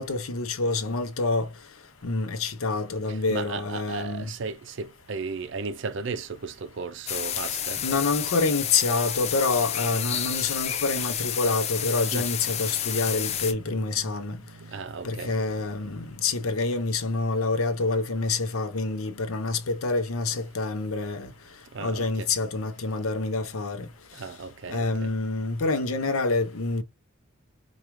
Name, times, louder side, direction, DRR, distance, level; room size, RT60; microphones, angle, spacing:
voice 1, 0.0-1.5 2.0-4.3 7.8-14.4 15.0-21.3 21.8-23.9 24.7-26.8, left 3 dB, 85° left, 0.7 m, -27 dB
voice 2, 3.1-7.8 12.1-12.3 14.5-15.5 15.9-16.0 17.2-17.3 21.7-22.3 24.1-25.1, right 4 dB, 60° right, 0.5 m, -35 dB
sound 1, 7.1-13.5, left 9 dB, 30° left, 0.3 m, -30 dB
4.7 x 2.4 x 2.9 m
head